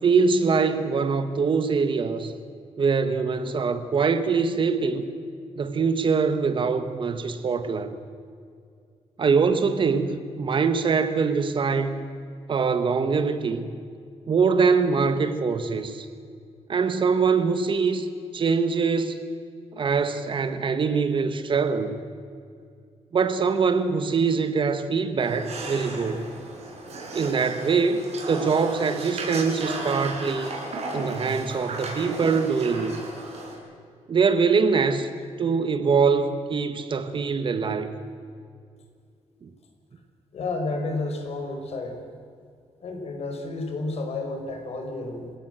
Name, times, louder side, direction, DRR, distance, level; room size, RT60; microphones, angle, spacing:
voice 1, 0.0-2.3 2.8-5.1 5.5-7.9 9.2-12.0 12.5-13.7 14.3-16.1 16.7-18.1 18.3-19.2 19.7-22.0 23.1-26.3 27.1-30.5 30.9-33.1 34.1-35.1 35.4-37.9 39.4-39.5, right 5 dB, 45° right, 1.5 m, -23 dB
sound 1, 25.2-33.5, right 2 dB, 65° right, 6.3 m, -35 dB
voice 2, 40.3-42.0 42.8-45.3, left 2 dB, 60° left, 4.6 m, -31 dB
27.5 x 17.5 x 7.8 m
wide cardioid pair, 145°, 12 cm